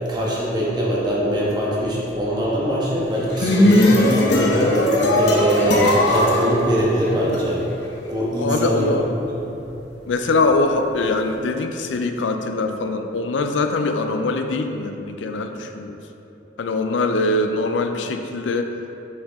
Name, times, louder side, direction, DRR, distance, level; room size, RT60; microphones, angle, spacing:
voice 1, 0.1-4.7 5.2-7.6 8.1-8.9, equal, 25° right, -6 dB, 1.3 m, -22 dB
sound 1, 3.1-7.4, left 1 dB, 65° left, 0.9 m, -18 dB
voice 2, 8.4-9.1 10.1-16.0 16.6-18.7, left 3 dB, 85° left, 6 dB, 0.4 m, -22 dB
7.2 x 4.7 x 3.6 m, 3.0 s
head